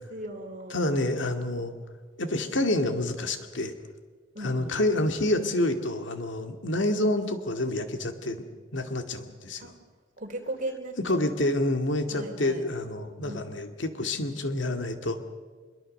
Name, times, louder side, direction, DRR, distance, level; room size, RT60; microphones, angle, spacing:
voice 1, 0.0-1.7 4.3-4.8 9.6-9.8 10.2-11.5 12.1-12.7 13.2-13.5, right 1 dB, 40° right, 3 dB, 3.5 m, -38 dB
voice 2, 0.7-1.7 2.2-3.7 4.4-8.5 8.7-9.7 11.0-15.2, left 1 dB, 65° left, 7 dB, 2.2 m, -28 dB
24.5 x 22.5 x 6.6 m, 1.5 s
head